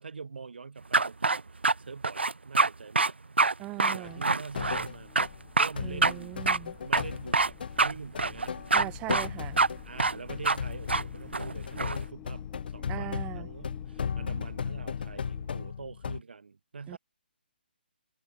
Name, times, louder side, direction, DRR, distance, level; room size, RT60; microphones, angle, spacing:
voice 1, 0.0-3.1 3.8-5.1 5.5-6.4 6.8-8.6 9.8-17.0, right 5 dB, 70° right, 3.0 m, -44 dB
sound 1, 0.9-1.7 2.0-2.7 2.9-3.1 3.4-3.5 3.8-4.9 5.1-5.3 5.6-5.7 6.0-6.1 6.5-6.6 6.9-7.5 7.8-7.9 8.2-8.8 9.1-9.3 9.6-9.7 10.0-10.1 10.4-10.6 10.9-11.0 11.3-12.0, right 3 dB, 90° right, 0.4 m, -24 dB
voice 2, 3.6-4.2 5.8-6.8 8.7-9.6 12.9-13.5 16.9-17.0, right 19 dB, 15° right, 0.5 m, -39 dB
sound 2, 4.0-5.4 5.7-16.2, left 6 dB, 60° left, 0.4 m, -36 dB
sound 3, 4.1-15.7, left 19 dB, 20° left, 1.9 m, -52 dB
figure-of-eight pair, 145°, 6 cm